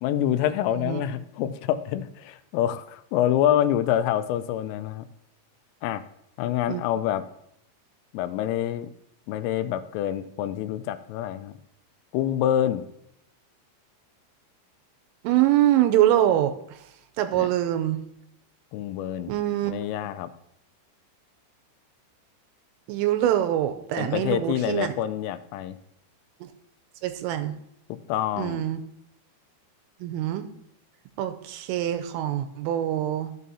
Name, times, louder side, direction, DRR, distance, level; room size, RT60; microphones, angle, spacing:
voice 1, 0.0-5.1 5.8-6.0 6.4-7.2 8.1-8.9 9.3-11.6 12.1-12.8 17.3-17.5 18.7-19.3 19.6-20.3 24.0-25.8 27.9-28.6, left 11 dB, 90° left, 10 dB, 3.2 m, -26 dB
voice 2, 15.2-16.8 17.2-18.0 19.3-19.7 22.9-24.9 26.4-26.5 27.0-27.6 28.4-28.8 30.0-30.5 31.2-33.4, right 12 dB, 85° right, 8 dB, 3.2 m, -24 dB
14.0 x 7.4 x 2.7 m, 0.74 s
omnidirectional pair, 5.7 m